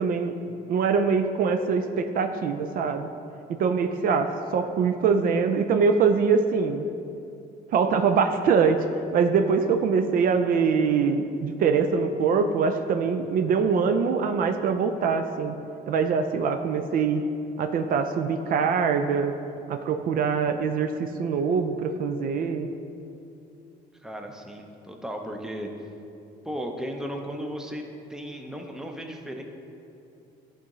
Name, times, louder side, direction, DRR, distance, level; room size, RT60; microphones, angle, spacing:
voice 1, 0.0-3.1 3.5-6.8 7.7-8.8 9.1-15.5 15.9-17.2 17.6-19.3 19.7-22.7, right 5 dB, 60° right, 7 dB, 0.4 m, -23 dB
voice 2, 24.0-25.7 26.4-29.4, equal, 5° right, 3 dB, 0.6 m, -35 dB
11.0 x 3.7 x 3.0 m, 2.7 s
cardioid pair, 110°, 17 cm